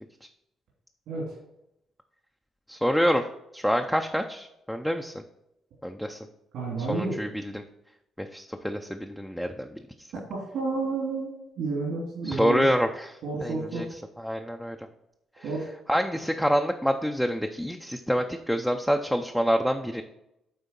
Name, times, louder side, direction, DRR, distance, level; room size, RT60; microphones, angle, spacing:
voice 1, 1.1-1.4 6.5-7.2 10.3-12.7 13.2-13.9 15.4-15.7, right 3 dB, 80° right, -4 dB, 2.7 m, -30 dB
voice 2, 2.7-3.2 3.5-5.2 5.8-6.2 6.9-7.6 8.2-9.7 12.3-13.9 14.2-14.8 15.9-20.0, equal, ahead, 4 dB, 0.5 m, -27 dB
9.3 x 3.6 x 5.3 m, 0.85 s
cardioid pair, 90°, 0 cm